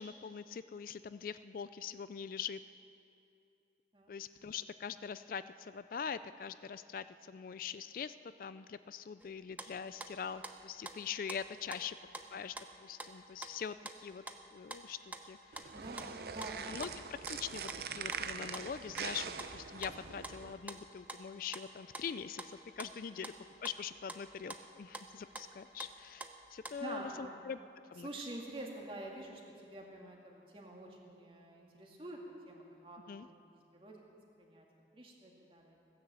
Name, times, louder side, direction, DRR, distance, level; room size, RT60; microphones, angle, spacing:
voice 1, 0.0-2.6 4.1-12.0 12.3-12.6 12.8-14.2 14.5-15.7 16.7-23.3 23.6-26.2 26.5-27.6 27.9-28.1 33.1-33.3, left 7 dB, 50° left, 13 dB, 0.3 m, -43 dB
sound 1, 9.2-26.8, right 2 dB, 10° right, 0.7 m, -48 dB
sound 2, 15.5-20.5, right 6 dB, 60° right, 0.6 m, -43 dB
voice 2, 15.7-16.6 26.8-27.4 28.0-33.0 33.2-33.4 33.7-34.0 34.4-34.7 34.9-35.8, right 1 dB, 30° right, -1 dB, 2.2 m, -47 dB
16.5 x 10.5 x 7.7 m, 2.6 s
head